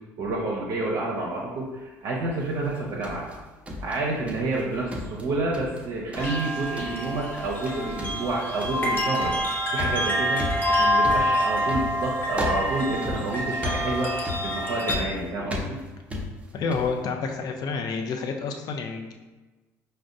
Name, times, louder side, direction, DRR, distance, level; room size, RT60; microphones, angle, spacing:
voice 1, 0.2-3.3 3.8-10.4 10.7-14.1 14.4-15.8, right 2 dB, 55° right, -4 dB, 0.6 m, -29 dB
sound 1, 2.6-4.6 4.9-5.9 6.1-6.5 6.8-7.1 7.4-7.7 8.0-17.0, left 1 dB, 15° right, 0.6 m, -35 dB
sound 2, 6.2-15.0, equal, 25° left, 0.9 m, -27 dB
voice 2, 16.5-19.1, left 5 dB, 50° left, 4 dB, 0.5 m, -29 dB
5.0 x 2.1 x 2.5 m, 1.2 s
hypercardioid pair, 60°, 8 cm